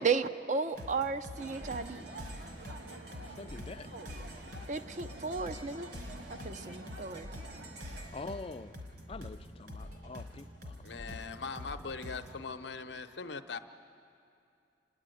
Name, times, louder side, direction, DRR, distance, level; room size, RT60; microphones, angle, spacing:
voice 1, 0.0-2.0 4.7-5.9 6.3-7.3, right 5 dB, 45° right, 10 dB, 0.6 m, -34 dB
sound 1, 0.7-12.4, left 1 dB, 60° right, 3.6 m, -46 dB
sound 2, 1.3-8.3, right 2 dB, 75° right, 1.5 m, -48 dB
voice 2, 3.4-3.9 8.1-8.8 9.1-10.7, left 3 dB, 30° left, 11 dB, 0.4 m, -44 dB
voice 3, 10.8-13.6, left 4 dB, 80° left, 8 dB, 0.8 m, -40 dB
30.0 x 10.5 x 9.2 m, 2.5 s
head